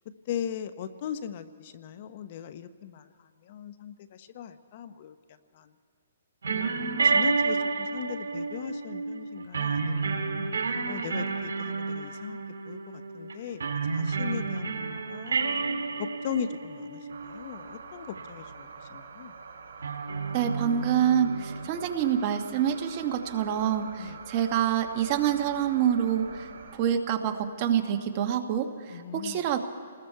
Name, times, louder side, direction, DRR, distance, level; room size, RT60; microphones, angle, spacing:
voice 1, 0.3-5.7 6.5-10.4 10.9-12.4 12.7-15.4 16.0-19.3 19.8-19.9 24.0-24.2 28.9-29.5, left 9 dB, 40° left, 12 dB, 0.8 m, -39 dB
sound 1, 6.4-17.6 18.0-18.2 19.8-21.7, right 4 dB, 85° right, 2.0 m, -30 dB
sound 2, 17.1-26.7, right 5 dB, 70° right, 4.1 m, -46 dB
voice 2, 20.3-26.5 26.7-29.6, right 9 dB, 30° right, 5 dB, 1.3 m, -27 dB
29.0 x 20.5 x 4.6 m, 2.4 s
hypercardioid pair, 160°, 0 cm